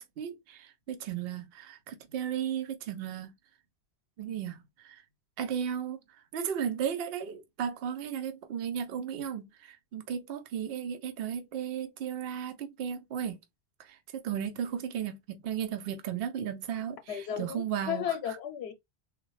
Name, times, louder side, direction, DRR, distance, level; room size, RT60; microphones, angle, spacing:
voice 1, 0.0-3.3 4.2-5.0 5.4-6.0 6.3-13.4 13.8-18.1, right 8 dB, 70° right, 0.8 m, -35 dB
voice 2, 17.1-18.7, left 10 dB, 90° left, 0.8 m, -34 dB
3.8 x 2.2 x 3.0 m
omnidirectional pair, 1.1 m